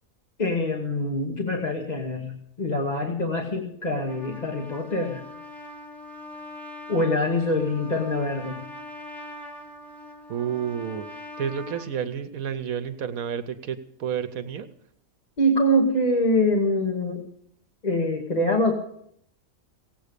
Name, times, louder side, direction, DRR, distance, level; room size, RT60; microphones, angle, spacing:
voice 1, 0.4-5.2 6.9-8.6 15.4-17.2 17.8-18.8, left 1 dB, 30° left, 1 dB, 1.3 m, -24 dB
Trumpet, 3.8-11.9, left 1 dB, ahead, 1.8 m, -42 dB
voice 2, 10.3-14.7, right 8 dB, 75° right, 10 dB, 1.2 m, -30 dB
17.0 x 8.3 x 6.6 m, 0.70 s
omnidirectional pair, 1.5 m